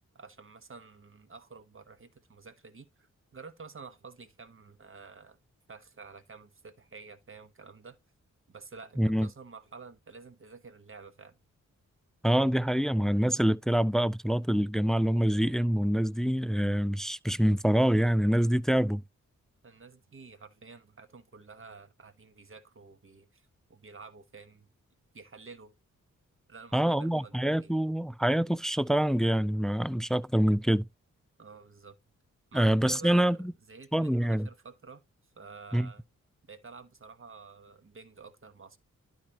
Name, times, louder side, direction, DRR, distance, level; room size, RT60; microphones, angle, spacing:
voice 1, 0.1-5.4 5.7-8.0 8.5-11.4 19.6-24.7 25.1-25.7 26.5-27.7 31.4-32.0 32.5-35.0 35.3-36.0 36.5-38.8, right 4 dB, 40° right, 1.2 m, -50 dB
voice 2, 9.0-9.3 12.2-19.0 26.7-30.9 32.5-33.5 33.9-34.5 35.7-35.9, equal, ahead, 0.3 m, -26 dB
12.0 x 4.1 x 3.0 m
cardioid pair, 70°, 31 cm